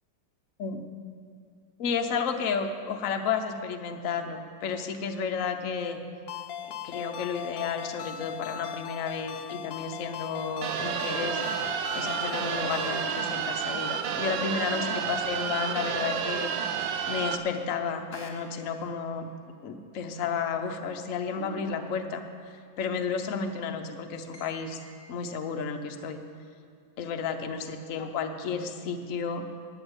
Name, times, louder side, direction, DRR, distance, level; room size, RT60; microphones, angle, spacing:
voice 1, 1.8-6.0 6.6-11.4 11.9-19.3 19.6-22.2 22.8-24.8 25.1-26.2 27.0-29.4, left 6 dB, 55° left, 5 dB, 1.1 m, -32 dB
Ringtone, 6.3-13.1, left 9 dB, 85° left, 1.4 m, -39 dB
sound 1, 10.6-17.4, right 7 dB, 80° right, 1.4 m, -30 dB
sound 2, 18.1-19.1 21.3-22.5 24.3-25.0, equal, 15° left, 1.5 m, -47 dB
9.6 x 9.1 x 8.0 m, 2.3 s
omnidirectional pair, 2.0 m